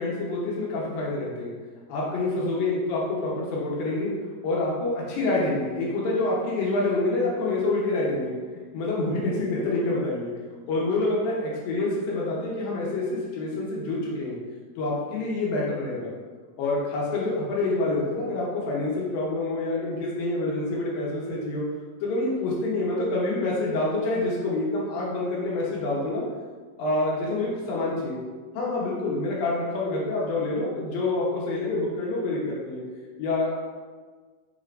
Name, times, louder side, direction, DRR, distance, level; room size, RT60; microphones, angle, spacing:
voice 1, 0.0-1.5 1.9-4.1 4.4-10.3 10.7-14.4 14.8-16.1 16.6-21.6 22.0-26.2 26.8-28.2 28.5-32.8 33.2-33.5, left 2 dB, 85° left, -5 dB, 2.8 m, -27 dB
5.6 x 3.3 x 2.5 m, 1.4 s
omnidirectional pair, 4.0 m